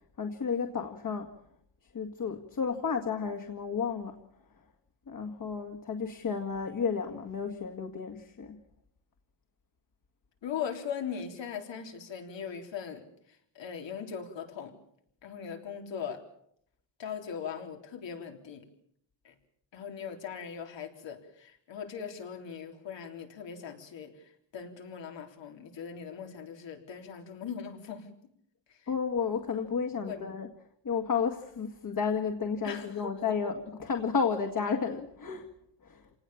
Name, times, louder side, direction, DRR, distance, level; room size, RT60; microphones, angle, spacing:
voice 1, 0.2-1.3 1.9-4.2 5.1-8.6 28.9-30.5 30.8-35.5 35.8-36.0, left 6 dB, 50° left, 3 dB, 2.1 m, -32 dB
voice 2, 10.4-13.0 13.6-14.7 15.2-16.2 17.0-18.6 19.2-19.3 19.7-24.1 24.5-28.1 30.1-30.2 32.6-33.4, left 7 dB, 85° left, 4 dB, 3.9 m, -39 dB
28.0 x 19.0 x 7.2 m, 0.70 s
wide cardioid pair, 135°, 43 cm